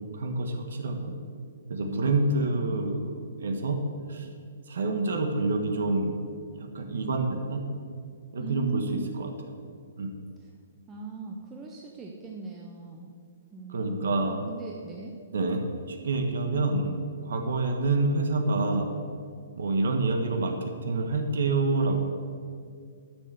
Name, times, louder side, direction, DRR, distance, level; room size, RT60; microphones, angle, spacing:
voice 1, 0.1-1.1 1.7-3.8 4.1-4.3 4.7-6.1 6.5-7.6 8.3-9.3 10.0-10.1 13.7-14.4 15.3-17.0 17.2-18.9 19.6-22.0, right 3 dB, 75° right, 4 dB, 1.3 m, -27 dB
voice 2, 1.8-2.2 2.7-2.9 8.4-9.3 10.9-13.1 13.5-15.1, right 3 dB, 10° right, -1 dB, 0.6 m, -39 dB
10.5 x 6.4 x 6.8 m, 2.2 s
hypercardioid pair, 170°, 0 cm